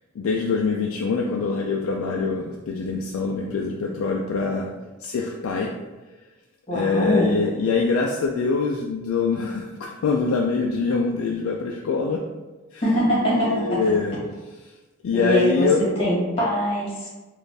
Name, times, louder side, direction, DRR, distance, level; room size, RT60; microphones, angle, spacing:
voice 1, 0.2-4.7 5.0-5.7 6.7-12.2 12.7-12.8 13.3-14.2 15.0-15.8, left 4 dB, 75° left, 0 dB, 0.3 m, -24 dB
voice 2, 6.7-7.3 12.8-13.8 15.1-15.7 16.0-17.1, equal, 25° left, -7 dB, 1.5 m, -22 dB
4.0 x 2.5 x 3.3 m, 1.2 s
head